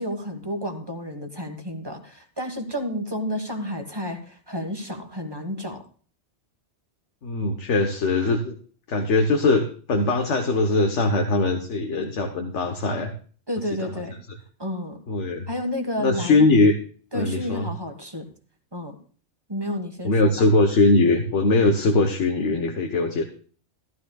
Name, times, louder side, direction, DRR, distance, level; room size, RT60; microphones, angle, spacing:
voice 1, 0.0-5.8 13.5-14.2 14.6-15.0 15.5-16.4 17.1-18.3 18.7-19.0 19.5-20.5, equal, 20° right, 4 dB, 1.4 m, -31 dB
voice 2, 7.2-8.5 8.9-13.1 13.8-13.9 14.3-14.4 15.1-15.5 16.0-16.7 17.1-17.7 20.0-23.2, left 2 dB, 85° left, 4 dB, 1.4 m, -21 dB
14.5 x 12.5 x 2.3 m, 0.42 s
omnidirectional pair, 1.2 m